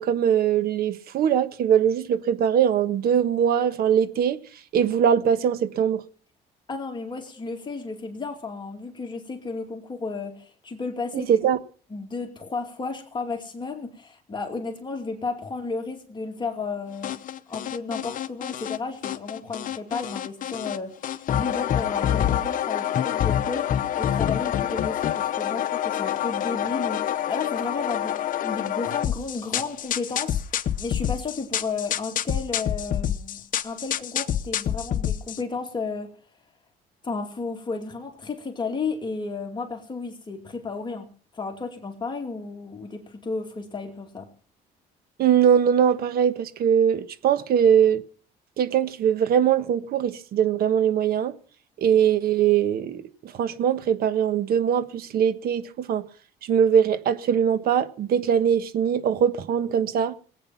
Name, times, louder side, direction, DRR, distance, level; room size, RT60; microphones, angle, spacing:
voice 1, 0.0-4.4 4.7-6.0 11.1-11.6 45.2-48.0 48.6-51.3 51.8-56.0 56.5-60.1, right 8 dB, 65° right, 1.3 m, -21 dB
voice 2, 6.7-11.3 11.9-17.2 17.5-28.2 28.4-36.1 37.0-41.1 41.3-44.3, left 4 dB, 25° left, 2.6 m, -33 dB
sound 1, 17.0-18.8 19.0-20.8 21.0-35.4, left 10 dB, 55° left, 1.0 m, -27 dB
19.0 x 9.1 x 5.8 m
cardioid pair, 110°, 17 cm